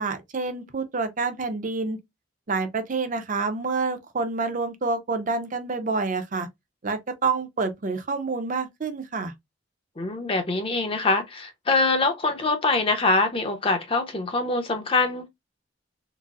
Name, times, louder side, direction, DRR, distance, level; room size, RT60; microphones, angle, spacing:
voice 1, 0.0-2.0 2.5-6.5 6.8-9.3, right 4 dB, 40° right, 0.6 m, -28 dB
voice 2, 10.0-15.3, left 3 dB, 30° left, 0.6 m, -24 dB
3.9 x 2.0 x 2.3 m
head